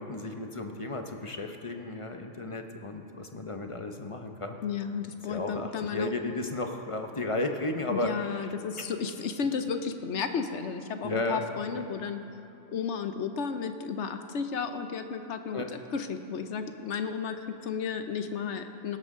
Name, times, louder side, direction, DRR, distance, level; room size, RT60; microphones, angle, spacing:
voice 1, 0.0-4.6 5.3-8.1 11.0-11.4 11.7-11.8 15.5-15.7, left 2 dB, 30° left, 4 dB, 0.6 m, -33 dB
voice 2, 4.6-6.1 7.9-12.2 12.7-19.0, left 6 dB, 60° left, 8 dB, 1.0 m, -33 dB
17.5 x 12.5 x 3.7 m, 3.0 s
omnidirectional pair, 1.4 m